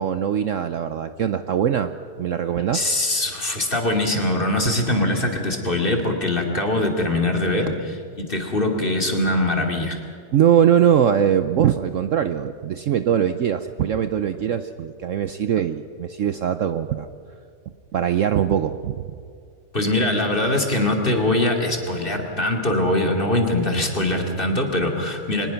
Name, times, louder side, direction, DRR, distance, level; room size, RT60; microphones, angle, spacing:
voice 1, 0.0-2.9 10.3-17.1 17.9-19.0, right 9 dB, 65° right, 10 dB, 0.8 m, -21 dB
voice 2, 2.7-10.0 19.7-25.5, left 1 dB, 30° left, 2 dB, 2.7 m, -22 dB
23.5 x 20.0 x 5.8 m, 2.4 s
omnidirectional pair, 1.8 m